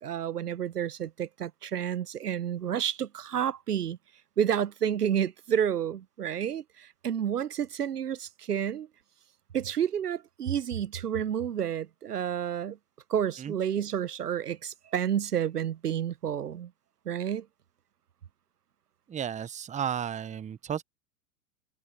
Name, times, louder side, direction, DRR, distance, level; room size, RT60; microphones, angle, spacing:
voice 1, 0.0-4.0 4.4-8.9 9.5-12.8 13.1-16.7 17.1-17.5, right 9 dB, 90° right, 1.1 m, -30 dB
voice 2, 19.1-20.8, right 8 dB, 15° right, 0.9 m, -33 dB
hypercardioid pair, 100°, 45 cm